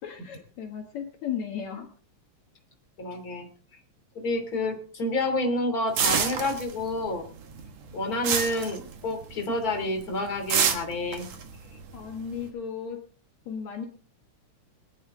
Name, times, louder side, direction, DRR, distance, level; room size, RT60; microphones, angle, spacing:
voice 1, 0.0-1.9 11.9-13.0 13.5-13.9, left 7 dB, 70° left, 4 dB, 2.8 m, -35 dB
voice 2, 3.0-3.5 4.1-7.3 7.9-11.3, left 2 dB, 30° left, 4 dB, 3.3 m, -29 dB
sound 1, 6.0-7.1 7.4-9.4 9.7-10.0 10.5-12.4, right 7 dB, 60° right, 2.7 m, -27 dB
21.0 x 11.0 x 3.7 m, 0.41 s
omnidirectional pair, 3.4 m